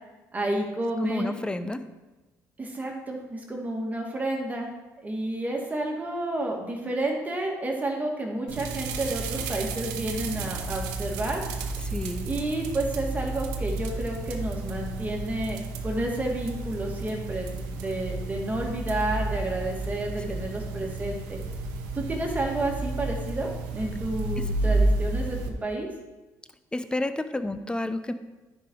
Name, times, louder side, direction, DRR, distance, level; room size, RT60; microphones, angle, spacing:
voice 1, 0.3-1.3 2.6-4.7 5.0-11.4 12.2-21.4 22.0-25.9, right 1 dB, 25° right, 0 dB, 2.2 m, -30 dB
voice 2, 1.0-1.8 11.8-12.3 20.8-20.9 24.6-24.8 26.7-28.1, left 2 dB, 15° left, 10 dB, 0.7 m, -30 dB
sound 1, 8.5-25.5, right 2 dB, 90° right, 0.9 m, -31 dB
10.0 x 5.2 x 4.6 m, 1.1 s
supercardioid pair, 80°, 7 cm